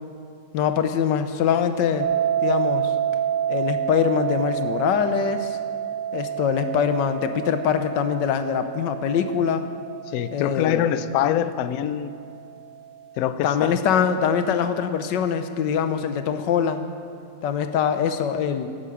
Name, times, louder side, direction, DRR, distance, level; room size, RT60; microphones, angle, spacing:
voice 1, 0.5-2.1 2.4-2.9 3.5-5.6 6.1-9.7 10.3-10.9 13.4-16.9 17.4-18.7, left 7 dB, 90° left, 9 dB, 1.4 m, -23 dB
sound 1, 2.0-12.9, right 9 dB, 90° right, 1.3 m, -29 dB
voice 2, 10.1-12.1 13.2-13.8, left 11 dB, 70° left, 13 dB, 0.9 m, -24 dB
15.5 x 10.5 x 5.0 m, 2.6 s
omnidirectional pair, 1.9 m